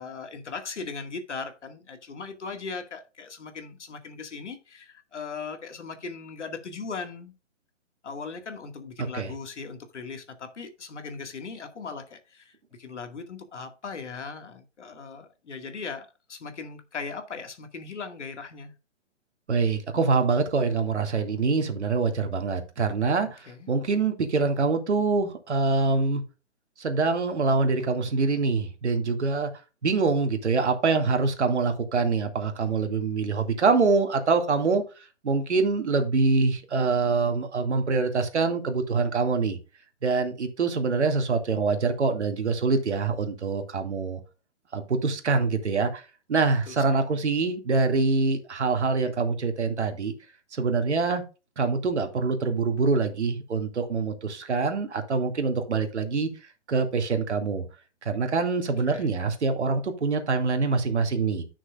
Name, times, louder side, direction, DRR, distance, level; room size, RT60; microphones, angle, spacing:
voice 1, 0.0-7.3 8.0-18.8 23.2-23.7 46.7-46.8 58.9-59.1, left 4 dB, 70° left, 2.1 m, -38 dB
voice 2, 19.5-26.2 26.8-29.5 29.8-34.8 35.2-39.6 40.0-44.2 44.7-46.0 46.3-50.1 50.5-51.2 51.6-56.3 56.7-57.6 58.0-61.4, right 4 dB, 65° right, 2.4 m, -25 dB
11.5 x 6.4 x 2.5 m
hypercardioid pair, 170°, 37 cm